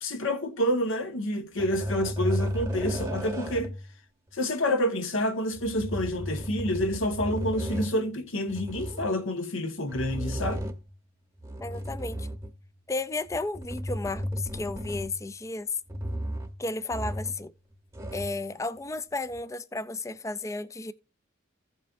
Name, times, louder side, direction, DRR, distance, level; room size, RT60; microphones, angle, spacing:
voice 1, 0.0-3.7 4.3-10.6, left 1 dB, 75° left, 1.5 m, -28 dB
sound 1, 1.6-3.9 5.5-7.9 8.5-9.1 9.9-10.9 11.4-12.6 13.3-15.3 15.9-16.6 16.9-17.5 17.7-18.4 19.3-19.4, equal, 15° right, 0.9 m, -34 dB
voice 2, 11.6-12.3 12.9-15.7 16.6-17.5 18.1-20.9, left 2 dB, 15° left, 0.4 m, -33 dB
16.0 x 5.3 x 2.6 m
head